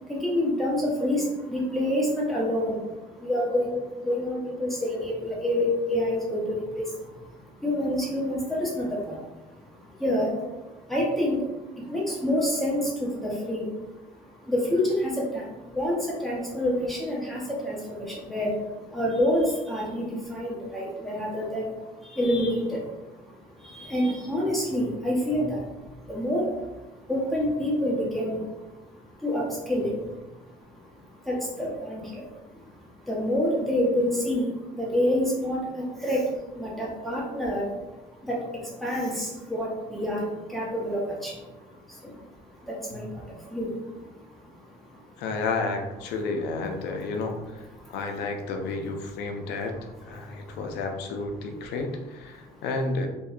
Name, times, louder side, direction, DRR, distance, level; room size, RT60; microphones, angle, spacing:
voice 1, 0.0-14.1 14.4-26.7 27.0-30.4 30.7-32.3 32.5-42.2 42.6-45.1 47.8-48.0 49.3-49.4 50.0-50.7 52.5-52.6, left 1 dB, ahead, -5 dB, 0.8 m, -28 dB
voice 2, 45.2-47.4 47.9-49.8 50.1-53.1, left 3 dB, 85° left, 4 dB, 0.4 m, -31 dB
2.7 x 2.1 x 2.4 m, 1.1 s
cardioid pair, 110°, 17 cm